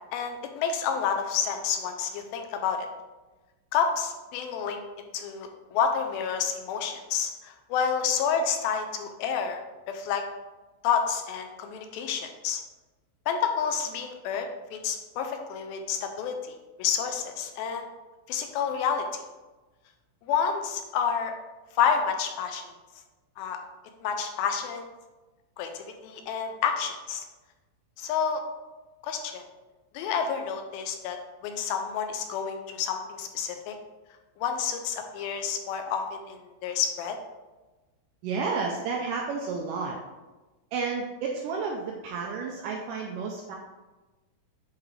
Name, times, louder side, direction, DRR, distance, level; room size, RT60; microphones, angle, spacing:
voice 1, 0.1-2.9 3.7-4.8 5.1-9.6 9.9-10.2 10.8-12.6 13.3-14.5 14.7-17.9 18.3-19.2 20.3-21.3 21.7-22.6 23.4-23.6 24.0-24.9 25.6-27.3 28.0-28.4 29.0-29.4 29.9-31.2 31.4-33.8 34.4-37.2, left 7 dB, 85° left, 5 dB, 2.4 m, -29 dB
voice 2, 38.2-40.0 40.7-43.6, right 4 dB, 85° right, 0 dB, 1.9 m, -31 dB
8.4 x 3.7 x 3.2 m, 1.2 s
omnidirectional pair, 4.3 m